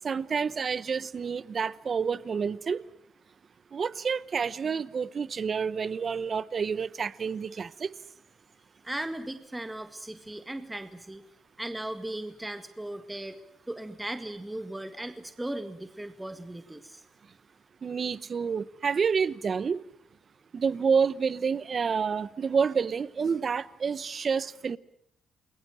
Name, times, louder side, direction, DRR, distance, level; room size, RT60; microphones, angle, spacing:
voice 1, 0.0-2.8 3.7-7.9 17.8-19.8 20.5-24.8, right 6 dB, 45° right, 1.0 m, -28 dB
voice 2, 8.8-11.2 11.6-13.4 13.7-17.0, right 1 dB, 10° right, 1.9 m, -37 dB
29.0 x 21.5 x 7.7 m
cardioid pair, 90°, 0 cm